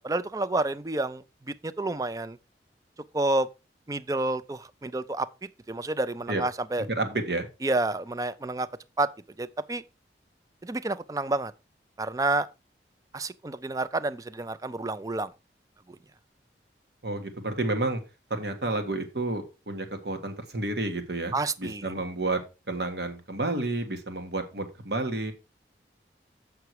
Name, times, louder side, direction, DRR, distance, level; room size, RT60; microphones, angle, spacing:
voice 1, 0.0-2.4 3.1-3.5 3.9-5.3 5.7-6.9 7.6-8.7 9.0-9.1 9.4-9.8 10.6-11.5 12.0-12.5 13.1-15.3 21.3-21.8, right 2 dB, 20° right, 0.4 m, -29 dB
voice 2, 6.9-7.5 17.0-18.0 18.3-22.4 22.7-25.3, right 2 dB, 70° right, 1.5 m, -30 dB
8.0 x 5.9 x 4.6 m
head